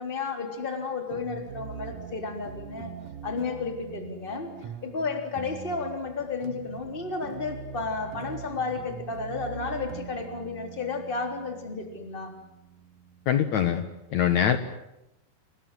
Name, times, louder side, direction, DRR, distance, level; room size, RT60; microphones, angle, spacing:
voice 1, 0.0-2.9 3.2-12.3, left 4 dB, 15° left, 5 dB, 3.3 m, -32 dB
sound 1, 1.1-13.9, right 8 dB, 60° right, 1.8 m, -43 dB
voice 2, 13.3-13.8 14.1-14.6, left 9 dB, 65° left, 10 dB, 2.0 m, -23 dB
28.5 x 20.5 x 9.2 m, 0.90 s
omnidirectional pair, 4.7 m